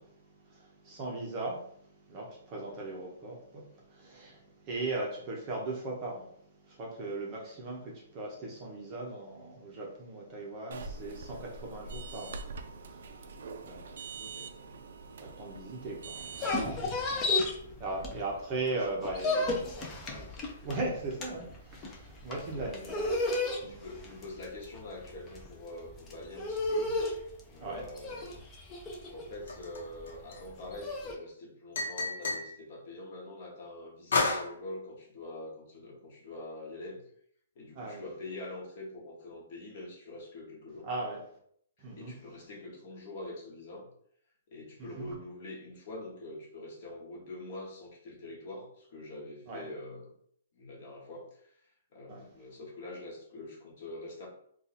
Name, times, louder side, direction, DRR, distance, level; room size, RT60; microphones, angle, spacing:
voice 1, 0.0-19.5 19.8-23.8 27.6-27.8 37.7-38.0 40.8-41.2 41.8-42.1 44.8-45.1 49.5-49.6 52.1-52.4, right 2 dB, 20° right, 0.7 m, -39 dB
sound 1, 10.7-16.7, right 4 dB, 60° right, 0.4 m, -44 dB
voice 2, 14.2-14.5 17.6-17.8 18.5-19.5 19.8-20.0 20.2-20.6 22.6-22.8 23.7-27.0 27.5-28.4 28.9-37.0 37.5-40.9 41.8-43.9 44.5-50.1 50.5-51.5 51.9-54.3, left 2 dB, 40° left, 1.0 m, -45 dB
sound 2, 16.2-18.5 18.8-31.1, left 2 dB, 15° left, 0.4 m, -33 dB
sound 3, 29.5-30.7 31.8-32.5 34.1-34.5, left 3 dB, 75° left, 0.9 m, -30 dB
2.7 x 2.3 x 4.0 m
hypercardioid pair, 170°, 0 cm